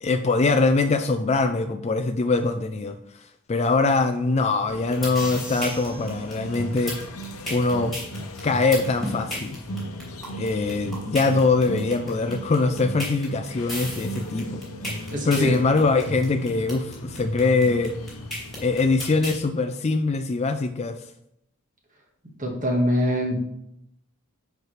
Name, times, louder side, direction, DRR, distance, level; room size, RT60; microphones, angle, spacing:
voice 1, 0.0-3.0 3.5-6.9 7.5-7.9 8.4-9.6 10.4-14.6 15.3-17.9 18.6-21.0, left 3 dB, 30° left, 7 dB, 0.3 m, -23 dB
sound 1, 4.7-19.4, equal, 75° left, 0.9 m, -36 dB
sound 2, 4.9-19.4, left 1 dB, ahead, 2.8 m, -34 dB
voice 2, 15.1-15.6 22.4-23.4, equal, 35° right, 0 dB, 1.5 m, -24 dB
9.6 x 4.6 x 3.2 m, 0.77 s
head